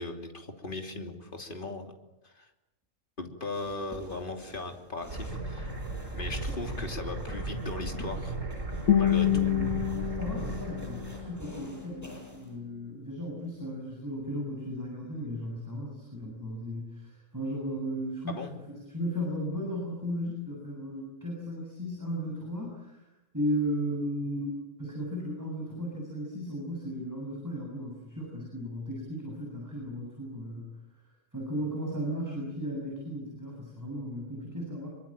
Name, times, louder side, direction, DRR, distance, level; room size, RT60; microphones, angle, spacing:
voice 1, 0.0-1.9 2.2-2.5 3.2-5.7 6.0-8.4 9.0-9.5 18.3-18.5, left 2 dB, 40° left, 5 dB, 3.2 m, -38 dB
sound 1, 3.5-12.6, equal, 10° left, 7.6 m, -49 dB
sound 2, 5.1-11.5, right 2 dB, 70° right, 5.4 m, -36 dB
Guitar, 8.9-11.9, left 10 dB, 65° left, 1.7 m, -28 dB
voice 2, 9.3-18.4 18.9-23.1 23.3-30.7 31.3-34.9, equal, 15° right, -2 dB, 7.6 m, -35 dB
25.5 x 24.5 x 8.9 m, 0.92 s
omnidirectional pair, 1.4 m